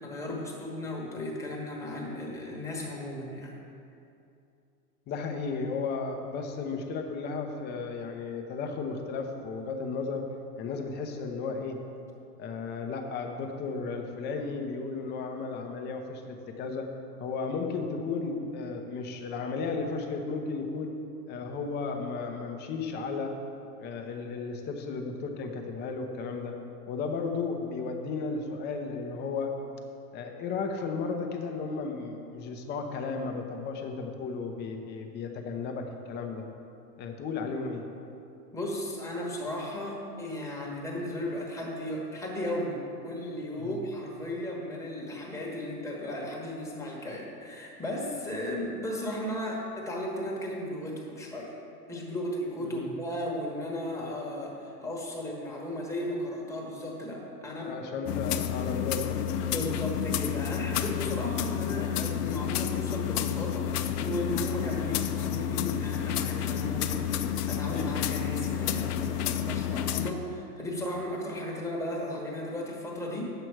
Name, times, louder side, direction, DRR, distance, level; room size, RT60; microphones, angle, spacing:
voice 1, 0.0-3.5 38.5-51.5 51.9-57.8 59.5-73.3, left 1 dB, 5° left, -3 dB, 1.3 m, -35 dB
voice 2, 5.1-10.3 10.6-11.8 12.4-16.9 17.2-21.0 21.3-23.3 23.8-26.6 26.9-29.5 30.1-36.4 37.0-37.8 43.6-43.8 52.6-52.9 57.7-59.2, left 4 dB, 20° left, 3 dB, 0.7 m, -34 dB
sound 1, 58.1-70.1, left 9 dB, 65° left, 0.7 m, -30 dB
9.9 x 7.8 x 4.6 m, 2.6 s
hypercardioid pair, 140°, 49 cm